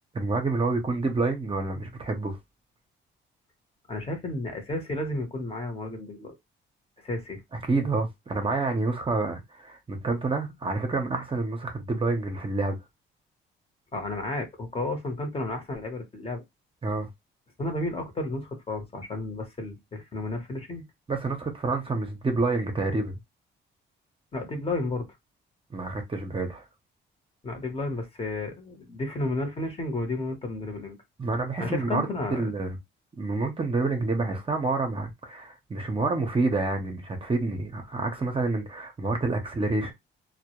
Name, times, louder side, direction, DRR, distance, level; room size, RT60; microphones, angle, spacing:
voice 1, 0.1-2.4 7.6-12.8 16.8-17.1 21.1-23.2 25.7-26.6 31.2-32.8 33.2-39.9, right 3 dB, 25° right, 0.6 m, -28 dB
voice 2, 3.9-6.3 7.0-7.4 13.9-16.4 17.6-20.8 24.3-25.1 27.4-31.0 31.6-32.4, left 2 dB, 30° left, 0.9 m, -32 dB
2.1 x 2.1 x 2.9 m
cardioid pair, 90°, 20 cm